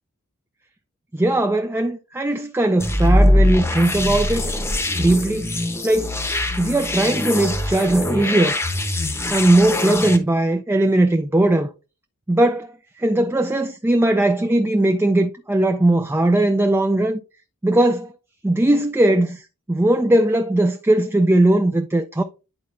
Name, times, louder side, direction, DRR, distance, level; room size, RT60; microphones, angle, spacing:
voice 1, 1.1-4.5 5.0-5.5 5.8-6.2 6.6-8.6 9.3-11.7 12.3-17.2 17.6-18.1 18.4-22.2, right 1 dB, 10° right, 0.4 m, -19 dB
sound 1, 2.8-10.2, left 1 dB, 10° left, 0.8 m, -22 dB
10.5 x 4.1 x 2.5 m
head